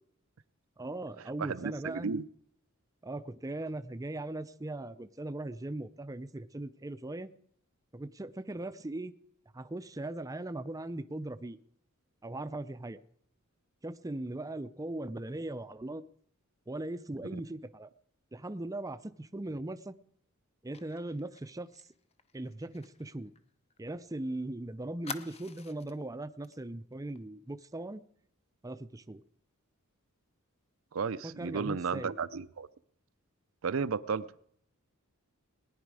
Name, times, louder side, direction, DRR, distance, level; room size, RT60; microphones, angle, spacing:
voice 1, 0.8-2.1 3.0-7.3 7.9-9.1 9.5-11.6 12.2-13.0 13.8-16.0 16.7-17.9 18.3-20.0 20.6-21.9 22.3-23.3 23.8-28.0 28.6-29.2 31.2-32.1, right 2 dB, 15° right, 13 dB, 0.5 m, -39 dB
voice 2, 1.4-2.3 30.9-32.7 33.6-34.3, right 5 dB, 70° right, 14 dB, 0.5 m, -33 dB
Fire, 20.7-24.2 24.4-24.5 25.0-26.0 26.4-26.6 26.9-27.2, left 5 dB, 30° left, 0.7 m, -47 dB
19.5 x 10.5 x 4.8 m, 0.69 s
head